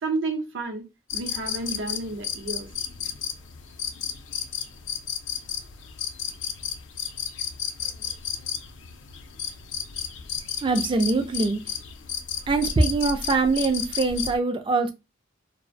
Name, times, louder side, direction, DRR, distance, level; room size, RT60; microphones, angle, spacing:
voice 1, 0.0-0.8 1.1-2.7, right 3 dB, 70° right, 0.6 m, -30 dB
sound 1, 1.1-14.4, left 8 dB, 70° left, 0.4 m, -33 dB
voice 2, 10.6-11.6 12.5-14.9, right 3 dB, 25° right, 0.3 m, -23 dB
2.4 x 2.1 x 2.5 m
head